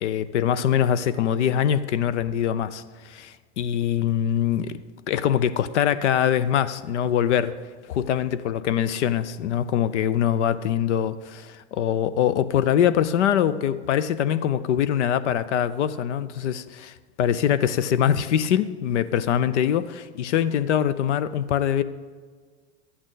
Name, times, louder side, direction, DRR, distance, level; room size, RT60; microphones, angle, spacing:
voice 1, 0.0-4.8 5.1-7.6 7.9-21.8, left 9 dB, 90° left, 0.6 m, -23 dB
12.5 x 8.7 x 3.9 m
supercardioid pair, 130°, 34 cm